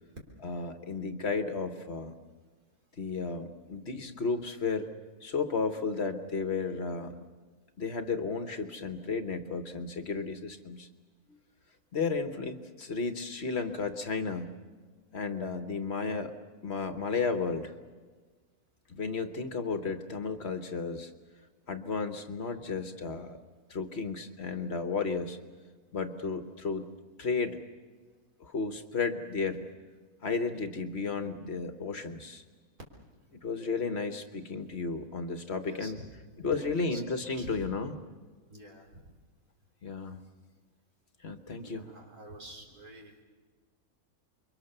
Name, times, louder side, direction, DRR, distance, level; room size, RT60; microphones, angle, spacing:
voice 1, 0.4-2.1 3.0-4.9 5.2-7.2 7.8-10.9 11.9-14.5 15.1-17.7 18.9-21.1 21.7-23.4 23.7-25.4 25.9-26.8 27.2-27.6 28.4-29.6 30.2-32.4 33.4-36.0 36.4-38.1 39.8-40.2 41.2-41.9, left 4 dB, 50° left, 8 dB, 1.4 m, -33 dB
voice 2, 35.7-37.0 37.4-37.7 38.5-39.1 41.6-43.2, right 1 dB, 85° right, 1 dB, 4.1 m, -48 dB
29.0 x 23.0 x 6.8 m, 1.4 s
omnidirectional pair, 1.5 m